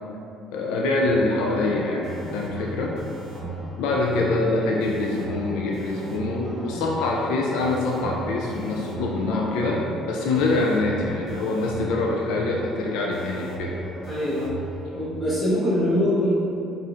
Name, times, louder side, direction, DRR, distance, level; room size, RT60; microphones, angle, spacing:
voice 1, 0.5-2.9 3.8-9.8 10.1-13.7, left 2 dB, 90° left, -1 dB, 0.3 m, -24 dB
sound 1, 1.0-15.1, right 3 dB, 60° right, 0.7 m, -39 dB
sound 2, 1.4-14.5, equal, 15° right, 0.6 m, -41 dB
voice 2, 14.0-14.6 14.9-16.3, left 1 dB, 15° left, -12 dB, 1.4 m, -23 dB
4.2 x 3.4 x 2.5 m, 2.8 s
cardioid pair, 170°, 0 cm